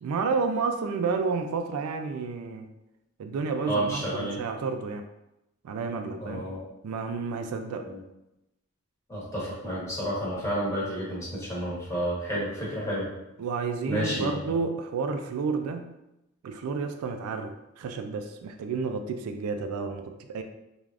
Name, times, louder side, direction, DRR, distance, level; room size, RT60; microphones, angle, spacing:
voice 1, 0.0-2.7 3.2-5.1 5.6-6.4 6.8-7.9 13.4-15.9 16.4-20.4, right 4 dB, 85° right, 7 dB, 0.3 m, -31 dB
voice 2, 3.6-4.4 6.2-6.6 7.8-8.0 9.1-13.1 13.9-14.5, equal, 15° left, -7 dB, 1.0 m, -30 dB
3.2 x 2.4 x 2.4 m, 0.90 s
head